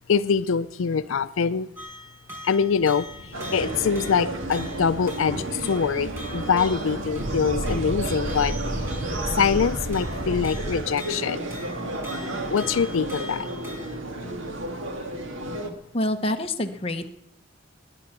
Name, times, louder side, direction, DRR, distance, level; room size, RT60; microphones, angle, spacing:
voice 1, 0.1-1.7 2.4-3.1 3.5-8.5 9.4-11.4 12.5-13.5, left 6 dB, 85° left, 14 dB, 0.5 m, -24 dB
sound 1, 1.7-14.0, left 1 dB, 10° right, 4.9 m, -43 dB
sound 2, 2.6-10.8, right 1 dB, 40° right, 7.5 m, -34 dB
sound 3, 3.3-15.7, right 2 dB, 75° right, 1.8 m, -33 dB
voice 2, 15.9-17.1, left 1 dB, 30° left, 5 dB, 1.0 m, -26 dB
20.5 x 9.8 x 5.9 m, 0.85 s
head